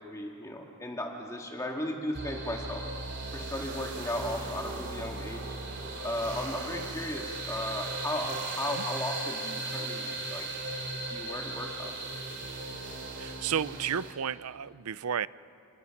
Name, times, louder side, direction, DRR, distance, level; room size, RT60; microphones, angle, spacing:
voice 1, 0.0-2.8 3.3-5.6 6.0-10.5 11.1-11.9, left 1 dB, 15° left, 1 dB, 1.8 m, -36 dB
sound 1, 2.1-14.1, right 2 dB, 55° right, 3.0 m, -37 dB
voice 2, 13.2-15.3, right 8 dB, 85° right, 18 dB, 0.5 m, -32 dB
30.0 x 21.0 x 5.8 m, 2.4 s
head